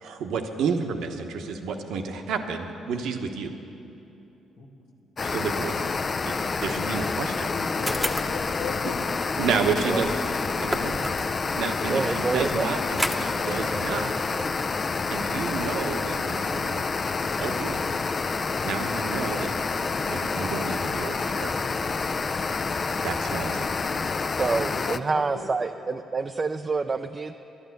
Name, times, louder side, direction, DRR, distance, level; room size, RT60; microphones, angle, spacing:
voice 1, 0.0-3.5 5.2-5.8 6.2-7.5 9.4-10.1 10.6-11.0 11.5-14.1 15.1-16.9 17.4-17.8 18.6-19.5 20.1-21.5 23.0-23.7, right 5 dB, 80° right, 5 dB, 1.1 m, -30 dB
sound 1, 5.2-25.0, left 4 dB, 40° left, 0.5 m, -28 dB
voice 2, 7.4-9.1 24.5-25.5, left 5 dB, 85° left, 1 dB, 1.9 m, -37 dB
sound 2, 7.8-11.5 12.9-14.4, equal, ahead, 1.0 m, -34 dB
voice 3, 11.9-12.7 24.4-27.4, right 4 dB, 35° right, 5 dB, 0.5 m, -27 dB
12.0 x 11.5 x 8.1 m, 2.9 s
cardioid pair, 75°, 0 cm